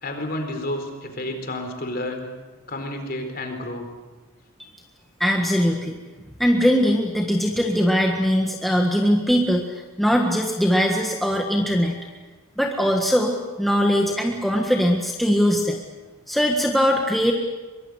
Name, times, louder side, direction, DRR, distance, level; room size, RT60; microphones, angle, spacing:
voice 1, 0.0-2.3 2.7-3.9, left 1 dB, 40° left, 5 dB, 4.2 m, -30 dB
voice 2, 5.2-6.0 6.4-9.7 10.0-12.0 12.6-15.8 16.3-17.3, equal, ahead, 1 dB, 1.6 m, -21 dB
23.5 x 23.0 x 8.1 m, 1.2 s
head